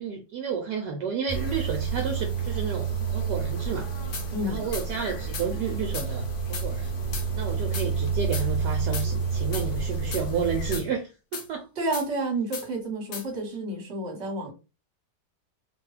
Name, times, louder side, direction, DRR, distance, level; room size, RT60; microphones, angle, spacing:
voice 1, 0.0-3.9 4.4-6.9 7.3-11.7, right 6 dB, 75° right, 2 dB, 1.1 m, -31 dB
sound 1, 1.3-10.8, right 5 dB, 50° left, 1.0 m, -29 dB
sound 2, 4.1-4.3 4.7-4.9 5.3-5.5 5.9-6.1 6.5-6.7 7.1-7.3 7.7-7.9 8.3-8.5 8.9-9.1 9.5-9.7 10.1-10.3 10.7-10.9 11.3-11.5 11.9-12.1 12.5-12.7 13.1-13.3, left 6 dB, 70° left, 0.6 m, -35 dB
voice 2, 4.3-4.6 11.8-14.5, right 1 dB, 45° right, 2 dB, 1.2 m, -30 dB
3.0 x 2.2 x 3.1 m, 0.30 s
omnidirectional pair, 1.9 m